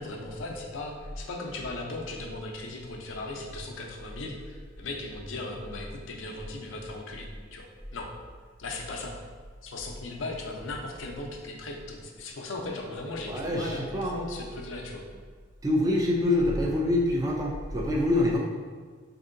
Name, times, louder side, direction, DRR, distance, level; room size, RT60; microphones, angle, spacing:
voice 1, 0.0-8.1 8.6-9.2 9.6-15.0, left 2 dB, 80° left, 1 dB, 0.5 m, -38 dB
voice 2, 13.3-14.2 15.6-18.4, left 1 dB, 20° right, -1 dB, 0.3 m, -25 dB
4.4 x 2.6 x 2.5 m, 1.5 s
head